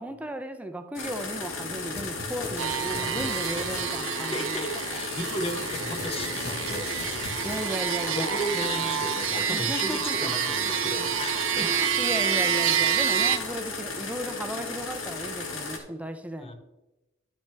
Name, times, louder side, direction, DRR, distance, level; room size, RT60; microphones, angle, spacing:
voice 1, 0.0-5.0 7.4-9.1 9.5-10.3 11.6-16.5, right 1 dB, 5° right, 0.5 m, -35 dB
sound 1, 0.9-15.8, left 3 dB, 75° left, 1.4 m, -35 dB
sound 2, 1.4-3.8 4.8-8.0, left 2 dB, 50° left, 1.4 m, -39 dB
sound 3, 2.6-13.4, right 8 dB, 70° right, 0.6 m, -28 dB
voice 2, 4.3-7.3 8.1-11.7 16.4-16.5, equal, 30° left, 0.9 m, -35 dB
12.0 x 5.8 x 3.4 m
head